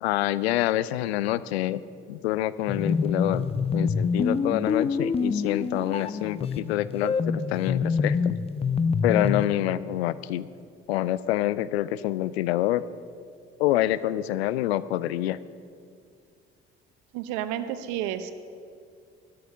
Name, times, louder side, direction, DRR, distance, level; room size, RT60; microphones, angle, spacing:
voice 1, 0.0-1.8 2.1-8.4 9.0-10.5 10.9-12.8 13.6-15.4, left 14 dB, 75° left, 17 dB, 0.5 m, -27 dB
sound 1, 2.7-9.5, left 5 dB, 20° left, 0.5 m, -26 dB
voice 2, 17.1-18.3, right 11 dB, 65° right, 11 dB, 1.0 m, -31 dB
12.5 x 12.5 x 5.6 m, 2.3 s
figure-of-eight pair, 50°, 32 cm